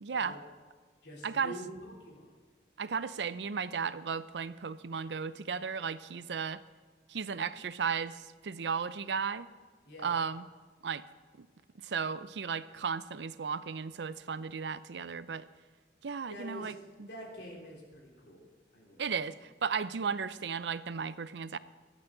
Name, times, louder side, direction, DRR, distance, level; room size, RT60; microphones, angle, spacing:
voice 1, 0.0-0.4 1.2-1.5 2.8-6.6 7.1-9.5 10.0-10.5 10.8-11.0 11.4-11.5 11.8-15.5 16.0-17.1 19.0-21.6, right 6 dB, 70° right, 15 dB, 0.5 m, -35 dB
voice 2, 1.0-2.4 9.9-10.1 16.3-16.8 17.1-18.4 18.7-19.0, equal, 70° left, -2 dB, 3.5 m, -46 dB
23.0 x 8.5 x 3.8 m, 1.5 s
head